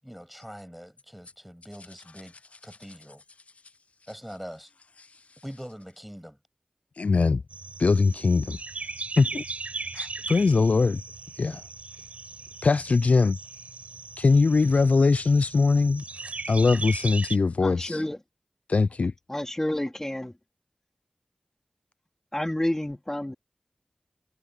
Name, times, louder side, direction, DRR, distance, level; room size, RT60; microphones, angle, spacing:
voice 1, 0.0-2.4 2.6-3.2 4.1-4.7 5.4-6.4, equal, ahead, 7.8 m, -43 dB
voice 2, 7.0-7.4 7.8-8.6 9.2-9.4 9.9-11.0 11.4-11.6 12.6-13.4 14.2-16.0 16.5-18.0 18.7-19.1, left 4 dB, 75° left, 0.3 m, -21 dB
sound 1, 7.5-17.4, right 3 dB, 90° right, 4.7 m, -38 dB
voice 3, 17.6-18.2 19.3-20.3 22.3-23.3, left 1 dB, 20° left, 3.4 m, -29 dB
wide cardioid pair, 60°, 2 cm